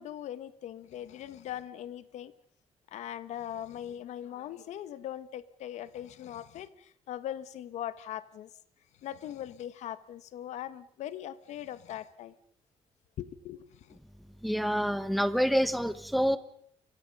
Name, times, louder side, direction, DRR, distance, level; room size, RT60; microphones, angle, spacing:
voice 1, 0.0-2.3 2.9-8.5 9.0-12.3 13.2-14.0, left 11 dB, 85° left, 15 dB, 1.3 m, -40 dB
voice 2, 14.4-16.4, equal, ahead, 12 dB, 1.3 m, -27 dB
29.5 x 24.5 x 5.4 m, 0.66 s
cardioid pair, 155°, 12 cm